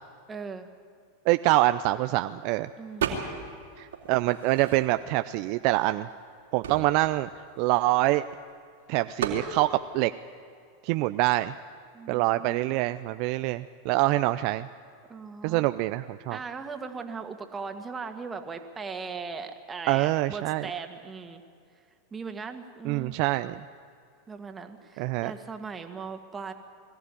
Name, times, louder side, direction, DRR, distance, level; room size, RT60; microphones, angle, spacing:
voice 1, 0.3-0.7 2.8-3.2 11.9-13.0 15.1-15.7 16.3-21.4 22.1-23.2 24.3-26.5, right 5 dB, 20° right, 6 dB, 2.0 m, -39 dB
voice 2, 1.3-2.7 3.8-6.1 6.5-8.2 8.9-10.1 10.8-11.5 12.1-14.7 15.4-16.4 19.9-20.7 22.8-23.6 25.0-25.3, right 18 dB, 55° right, 11 dB, 0.5 m, -25 dB
sound 1, 3.0-3.6 3.9-5.2 5.8-5.9 6.1-8.4 9.2-9.5, right 7 dB, 80° right, 3.3 m, -34 dB
21.5 x 14.5 x 9.9 m, 2.4 s
hypercardioid pair, 100°, 0 cm